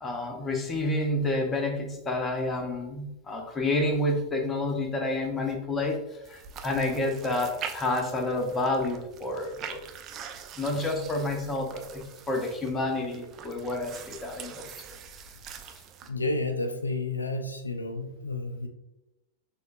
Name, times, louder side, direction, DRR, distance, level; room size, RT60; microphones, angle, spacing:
voice 1, 0.0-9.9 10.6-14.7, left 2 dB, 20° left, 3 dB, 0.7 m, -29 dB
sound 1, 6.2-16.1, right 7 dB, 30° right, 0.4 m, -44 dB
voice 2, 16.0-18.7, left 2 dB, 80° left, 6 dB, 0.3 m, -31 dB
6.1 x 2.3 x 2.6 m, 0.94 s
figure-of-eight pair, 90°, 0 cm